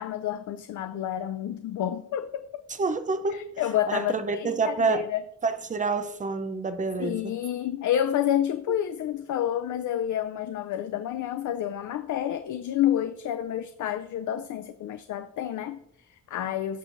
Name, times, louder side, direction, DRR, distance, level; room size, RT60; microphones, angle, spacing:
voice 1, 0.0-2.6 3.3-5.2 7.0-16.8, left 11 dB, 70° left, 0.5 m, -29 dB
voice 2, 2.8-3.5 3.9-5.1 5.4-7.3, right 4 dB, 25° right, 0.6 m, -28 dB
16.5 x 6.4 x 2.6 m
wide cardioid pair, 175°, 32 cm